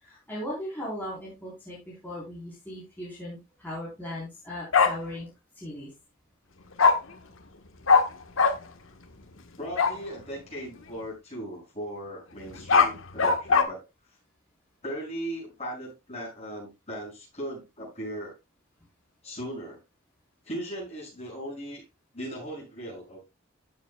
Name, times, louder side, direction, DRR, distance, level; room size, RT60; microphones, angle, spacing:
voice 1, 0.0-5.3 5.5-5.9, left 1 dB, 10° left, 3.9 m, -38 dB
Bark, 4.7-4.9 6.8-6.9 7.9-8.0 8.4-8.5 9.8-10.0 12.5-13.6, left 5 dB, 70° left, 1.3 m, -19 dB
voice 2, 9.6-13.9 14.8-18.4 19.2-19.8 20.4-21.8 22.1-23.2, right 1 dB, 30° left, 7.0 m, -38 dB
14.0 x 7.4 x 2.3 m
head